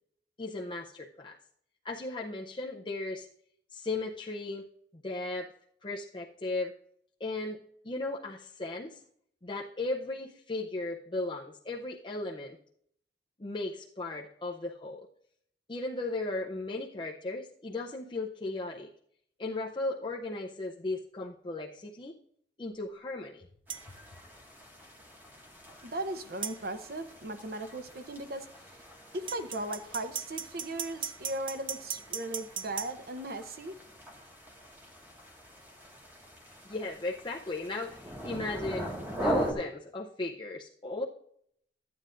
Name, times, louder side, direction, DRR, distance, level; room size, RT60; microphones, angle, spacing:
voice 1, 0.4-1.4 1.8-3.3 3.7-4.7 4.9-5.5 5.8-6.7 7.2-7.6 7.8-9.0 9.4-12.6 13.4-15.1 15.7-18.9 19.4-22.2 22.6-23.5 36.6-41.0, left 2 dB, 30° left, 0.6 m, -36 dB
sound 1, 23.7-39.5, right 1 dB, 10° right, 1.7 m, -41 dB
sound 2, 23.7-23.9 26.4-26.6 29.3-32.9, right 7 dB, 30° right, 0.5 m, -37 dB
voice 2, 25.7-28.8 29.1-33.8, right 1 dB, 55° right, 0.8 m, -38 dB
13.5 x 9.4 x 2.5 m
head